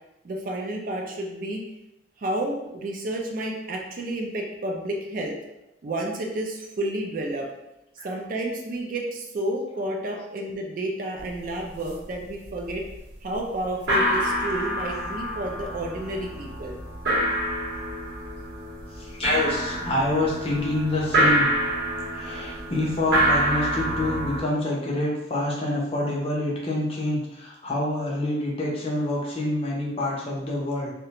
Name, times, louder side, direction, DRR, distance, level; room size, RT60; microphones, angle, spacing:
voice 1, 0.2-1.6 2.2-5.4 5.8-7.5 8.0-12.8 13.2-16.8, right 1 dB, 45° right, 1 dB, 0.3 m, -30 dB
sound 1, 11.2-11.3 11.6-12.1 12.4-13.0 13.4-13.5 13.7-24.4, right 1 dB, 60° right, 0.8 m, -27 dB
voice 2, 18.9-21.5 22.1-30.9, left 1 dB, 30° left, -3 dB, 0.5 m, -27 dB
2.4 x 2.1 x 2.8 m, 0.92 s
head